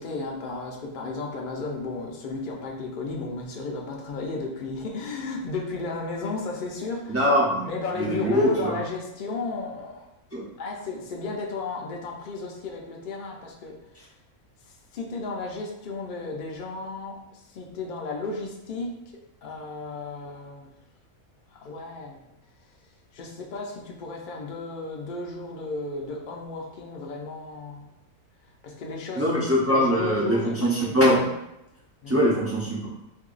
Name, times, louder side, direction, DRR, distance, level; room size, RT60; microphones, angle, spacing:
voice 1, 0.0-7.2 7.6-10.1 10.6-13.7 14.9-19.0 19.4-20.7 21.5-22.3 23.1-27.9 28.6-29.3 29.7-31.1 32.0-32.2, left 3 dB, 65° left, 0 dB, 0.5 m, -34 dB
voice 2, 7.1-7.7 7.9-8.8 10.3-10.4 29.2-31.2 32.1-32.9, equal, 20° right, -7 dB, 0.4 m, -22 dB
2.9 x 2.6 x 3.8 m, 0.87 s
omnidirectional pair, 1.5 m